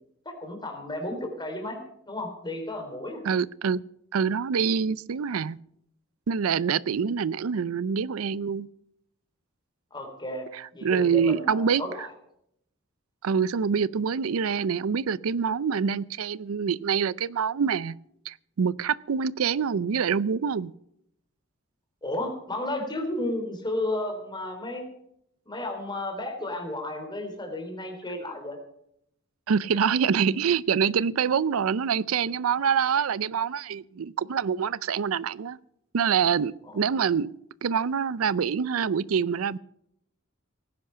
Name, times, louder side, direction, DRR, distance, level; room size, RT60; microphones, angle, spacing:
voice 1, 0.3-1.8 2.1-3.2 9.9-10.5 10.7-12.1 22.0-24.8 25.5-28.6 36.7-36.8, left 1 dB, 20° left, 4 dB, 3.6 m, -33 dB
voice 2, 3.2-3.8 4.1-5.6 6.3-8.7 10.5-11.8 13.2-18.0 18.3-20.7 29.5-35.6 35.9-37.3 37.6-39.6, right 6 dB, 85° right, 20 dB, 0.5 m, -25 dB
18.0 x 10.5 x 5.7 m, 0.74 s
head